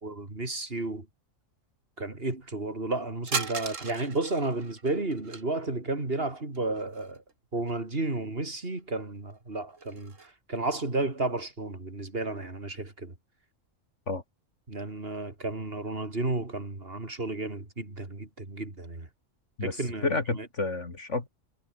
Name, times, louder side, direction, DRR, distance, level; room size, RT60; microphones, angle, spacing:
voice 1, 0.0-1.1 2.0-7.2 7.5-13.1 14.7-19.1 19.6-20.1 20.3-20.5, right 2 dB, 45° right, 4.1 m, -32 dB
sound 1, 3.3-5.4 6.5-7.3 7.6-7.7 8.7-8.8 9.2-10.3, right 4 dB, 70° right, 2.6 m, -37 dB
voice 2, 19.6-21.3, left 3 dB, 60° left, 3.0 m, -30 dB
omnidirectional pair, 1.4 m